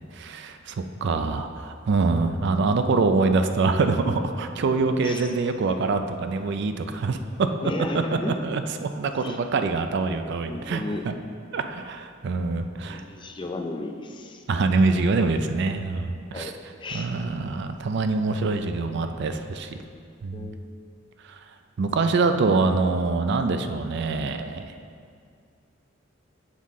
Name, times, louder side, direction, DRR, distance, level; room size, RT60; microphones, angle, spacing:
voice 1, 0.1-7.2 8.3-11.1 11.5-13.0 14.5-16.5 16.9-19.8 20.2-20.5 21.2-21.4 21.8-24.6, right 3 dB, 60° right, 8 dB, 0.4 m, -25 dB
voice 2, 5.0-5.3 7.6-8.3 9.2-9.4 10.1-11.1 12.9-14.4 16.3-17.1 20.3-20.6, left 2 dB, 25° left, 4 dB, 0.4 m, -34 dB
7.3 x 5.7 x 3.6 m, 2.3 s
head